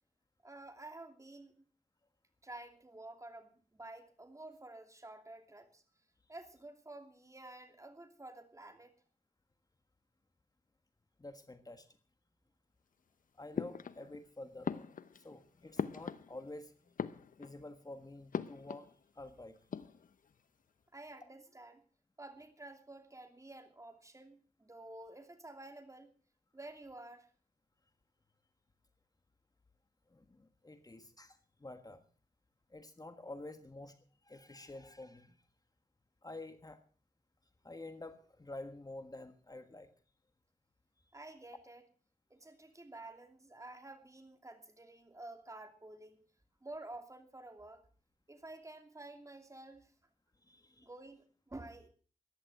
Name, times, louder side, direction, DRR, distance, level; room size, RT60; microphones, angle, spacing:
voice 1, 0.4-1.5 2.4-5.8 6.3-8.9 20.9-21.8 22.2-26.1 26.5-27.3 41.1-41.8 42.3-46.2 46.6-47.9 48.3-49.9 50.8-51.9, right 2 dB, 20° right, 6 dB, 2.8 m, -51 dB
voice 2, 11.2-11.9 13.4-17.0 17.4-18.9 19.1-19.6 30.1-32.0 32.7-33.9 34.2-35.4 36.2-36.8 37.6-39.9 50.4-50.9, left 2 dB, 25° left, 9 dB, 1.5 m, -49 dB
sound 1, 13.5-14.3 14.6-16.6 16.9-17.7 18.3-18.9 19.2-19.3 19.6-20.3, left 7 dB, 75° left, 0.8 m, -41 dB
14.5 x 11.0 x 6.0 m, 0.41 s
cardioid pair, 75°, 14 cm